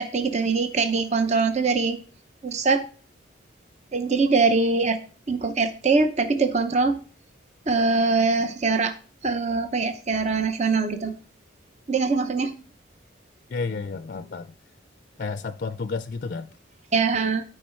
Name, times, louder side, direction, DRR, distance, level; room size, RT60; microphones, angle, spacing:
voice 1, 0.0-2.0 2.4-2.8 3.9-5.0 5.3-7.0 7.7-8.9 9.2-11.1 11.9-12.5 16.9-17.4, right 4 dB, 35° right, 0.7 m, -22 dB
voice 2, 13.5-14.5 15.2-16.5, left 4 dB, 45° left, 0.4 m, -31 dB
12.5 x 4.7 x 4.4 m
head